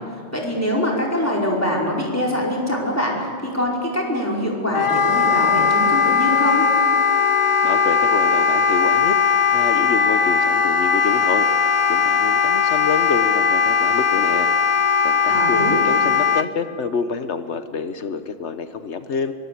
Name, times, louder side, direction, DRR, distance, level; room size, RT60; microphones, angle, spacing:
voice 1, 0.3-6.6 15.3-15.8, left 1 dB, 15° left, -3 dB, 4.9 m, -23 dB
Wind instrument woodwind instrument, 4.7-16.5, left 6 dB, 35° left, 0.7 m, -18 dB
voice 2, 7.6-11.5 11.9-14.5 15.0-19.3, left 5 dB, 85° left, 10 dB, 1.4 m, -27 dB
23.5 x 22.0 x 8.5 m, 2.1 s
omnidirectional pair, 1.1 m